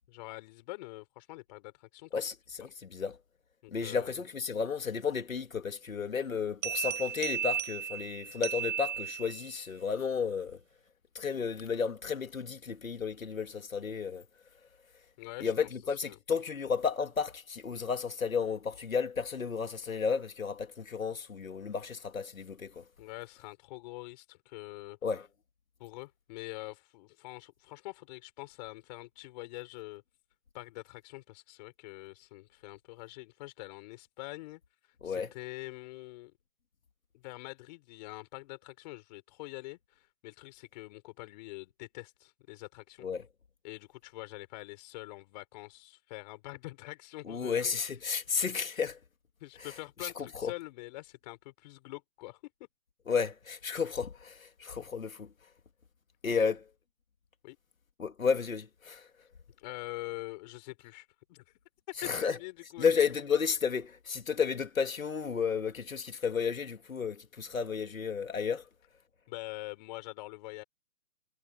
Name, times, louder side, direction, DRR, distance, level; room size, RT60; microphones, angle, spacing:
voice 1, 0.0-2.2 3.6-4.1 15.2-15.5 16.0-16.2 23.0-25.0 25.8-30.0 30.5-34.6 35.0-36.3 37.1-43.1 43.6-47.8 49.4-52.5 56.3-56.6 57.4-57.6 59.6-61.4 62.0-63.2 69.3-70.6, left 20 dB, 35° left, 4.4 m, -45 dB
voice 2, 2.1-3.2 3.7-10.6 11.1-14.3 15.4-22.8 25.0-25.3 35.0-35.3 43.0-43.2 47.2-49.0 50.0-50.5 53.1-55.3 56.2-56.6 58.0-59.1 62.0-62.4 62.8-68.6, left 6 dB, 85° left, 3.3 m, -32 dB
sound 1, 6.6-9.6, right 8 dB, 70° right, 5.4 m, -35 dB
hypercardioid pair, 150°, 39 cm